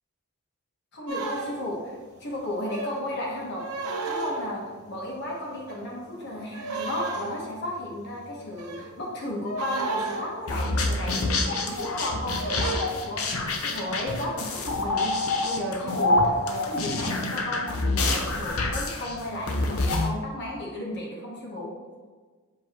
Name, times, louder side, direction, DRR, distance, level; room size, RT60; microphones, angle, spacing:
voice 1, 0.9-3.7 4.0-21.7, left 1 dB, 50° left, -3 dB, 1.2 m, -34 dB
sound 1, 1.1-1.9 2.7-3.1 3.6-4.9 5.2-6.2 6.5-13.7 14.5-14.9 15.2-16.6, right 3 dB, 90° right, 1.0 m, -35 dB
sound 2, 10.5-20.1, left 2 dB, 75° left, 0.8 m, -27 dB
6.1 x 5.1 x 3.0 m, 1.4 s
head